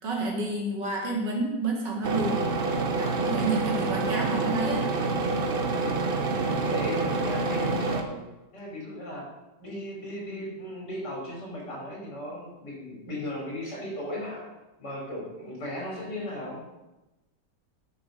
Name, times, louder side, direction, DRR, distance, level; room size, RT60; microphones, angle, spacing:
voice 1, 0.0-2.4 2.9-4.9, right 2 dB, 70° right, -1 dB, 2.8 m, -30 dB
sound 1, 2.0-8.0, right 3 dB, 40° right, 0.8 m, -27 dB
voice 2, 6.2-8.2 8.5-9.2 9.6-14.5 14.8-16.6, left 1 dB, 65° left, -2 dB, 4.1 m, -36 dB
12.0 x 6.0 x 5.1 m, 1.0 s
omnidirectional pair, 2.0 m